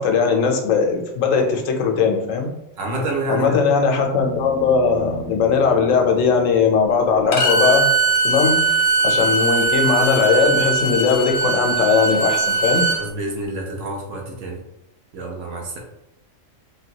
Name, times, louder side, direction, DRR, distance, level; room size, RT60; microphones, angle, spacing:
voice 1, 0.0-2.5 3.3-7.9 8.2-8.6 9.0-12.9, left 5 dB, 80° left, 3 dB, 1.0 m, -19 dB
voice 2, 2.8-3.6 13.0-14.6 15.1-15.8, right 1 dB, 80° right, 0 dB, 1.1 m, -27 dB
sound 1, 3.2-7.2 9.6-9.7, left 2 dB, 55° right, 1.2 m, -38 dB
Bowed string instrument, 7.3-13.0, right 4 dB, 60° left, 0.6 m, -20 dB
3.7 x 2.2 x 2.8 m, 0.86 s
omnidirectional pair, 1.3 m